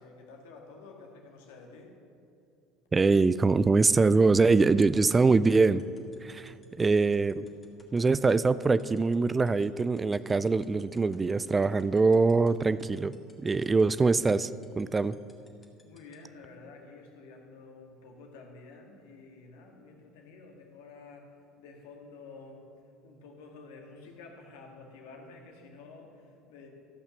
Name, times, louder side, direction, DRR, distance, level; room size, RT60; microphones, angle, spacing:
voice 1, 0.0-2.0 15.8-22.6 23.0-26.7, left 3 dB, 70° left, 2 dB, 1.7 m, -50 dB
voice 2, 2.9-5.8 6.2-7.5 7.9-13.2 13.4-15.1, right 4 dB, 20° right, 15 dB, 0.3 m, -23 dB
sound 1, 5.3-16.1, left 3 dB, 20° left, 1.9 m, -59 dB
14.0 x 5.7 x 6.9 m, 2.5 s
hypercardioid pair, 70°, 0 cm